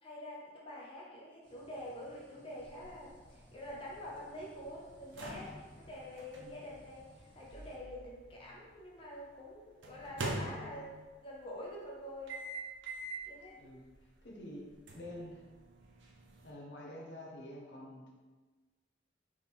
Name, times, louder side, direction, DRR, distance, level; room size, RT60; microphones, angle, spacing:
voice 1, 0.0-12.3 13.2-13.6, left 1 dB, 30° left, -4 dB, 0.6 m, -47 dB
sound 1, 1.4-7.8, equal, 5° left, 1.2 m, -62 dB
sound 2, 2.6-8.7 9.8-11.2 12.3-13.3 13.8-13.9 14.9-16.5, right 2 dB, 80° right, 0.7 m, -44 dB
voice 2, 6.4-6.7 13.5-15.4 16.4-18.1, left 1 dB, 65° left, -1 dB, 0.8 m, -48 dB
3.6 x 3.1 x 4.2 m, 1.3 s
head